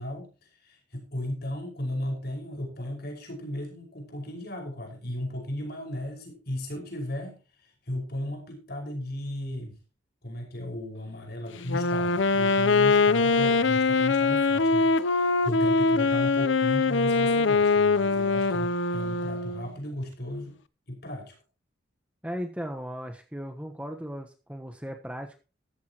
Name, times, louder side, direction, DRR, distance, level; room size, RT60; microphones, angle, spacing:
voice 1, 0.0-9.8 10.2-20.6 20.9-21.4, left 1 dB, 55° left, 3 dB, 5.4 m, -35 dB
Wind instrument woodwind instrument, 11.6-19.7, left 3 dB, 75° left, 0.7 m, -23 dB
voice 2, 22.2-25.4, equal, 5° right, 4 dB, 1.1 m, -37 dB
14.0 x 13.5 x 3.0 m, 0.32 s
head